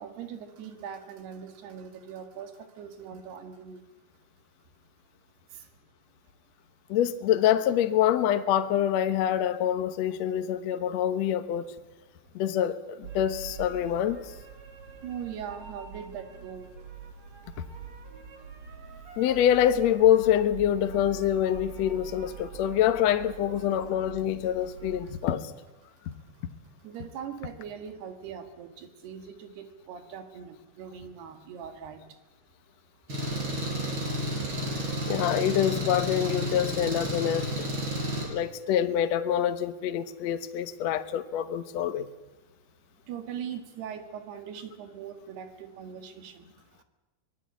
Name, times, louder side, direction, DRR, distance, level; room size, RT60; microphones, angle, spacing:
voice 1, 0.0-3.9 5.5-5.7 15.0-16.8 26.8-32.2 37.9-38.4 43.1-46.8, right 8 dB, 80° right, 4.0 m, -41 dB
voice 2, 6.9-11.7 12.3-14.2 19.2-25.5 26.0-26.1 26.4-26.5 35.1-37.7 38.3-42.1, left 10 dB, 70° left, 1.6 m, -26 dB
sound 1, 13.0-25.2, right 7 dB, 45° right, 3.4 m, -44 dB
Engine, 33.1-38.2, equal, 30° right, 6.7 m, -31 dB
24.0 x 19.5 x 8.5 m
omnidirectional pair, 4.6 m